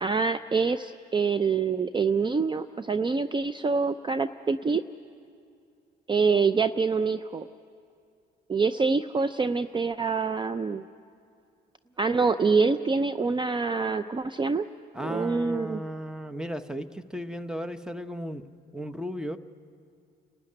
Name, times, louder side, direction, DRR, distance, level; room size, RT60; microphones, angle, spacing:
voice 1, 0.0-4.8 6.1-7.5 8.5-10.8 12.0-14.7 15.0-15.8, right 4 dB, 25° right, 11 dB, 0.5 m, -25 dB
voice 2, 14.9-19.4, equal, 5° right, 11 dB, 0.9 m, -35 dB
29.5 x 13.0 x 9.9 m, 2.4 s
cardioid pair, 90°, 20 cm